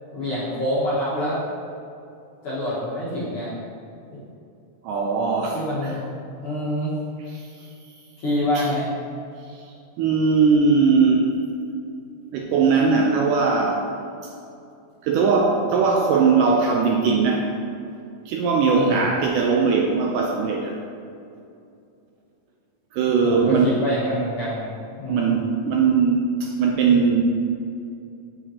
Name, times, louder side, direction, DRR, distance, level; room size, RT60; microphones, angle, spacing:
voice 1, 0.1-1.4 2.4-3.5 5.5-6.1 6.4-6.9 8.2-8.9 18.7-19.0 23.2-25.4, left 1 dB, 50° left, -9 dB, 1.9 m, -26 dB
voice 2, 4.8-5.9 7.3-7.5 8.5-8.7 9.5-9.6 10.0-11.3 12.3-13.9 15.0-17.5 18.3-20.7 22.9-23.8 25.1-27.2, right 5 dB, 80° right, 0 dB, 2.0 m, -20 dB
8.3 x 7.3 x 2.8 m, 2.6 s
omnidirectional pair, 4.1 m